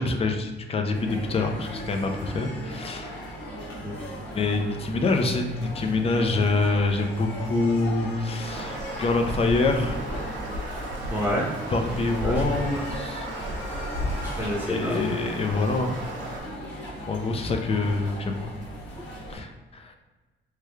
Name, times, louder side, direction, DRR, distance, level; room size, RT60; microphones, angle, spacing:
voice 1, 0.0-3.3 4.3-10.0 11.7-13.3 14.7-15.9 17.1-18.5 19.3-20.0, left 3 dB, 30° left, 4 dB, 0.4 m, -26 dB
sound 1, 0.9-19.4, equal, 60° left, 1.2 m, -38 dB
sound 2, 8.4-16.4, right 1 dB, 80° right, 0.7 m, -34 dB
voice 2, 11.1-11.5 12.2-12.8 14.2-15.0, equal, 10° right, -5 dB, 0.8 m, -29 dB
3.1 x 2.3 x 3.3 m, 1.2 s
cardioid pair, 90°, 20 cm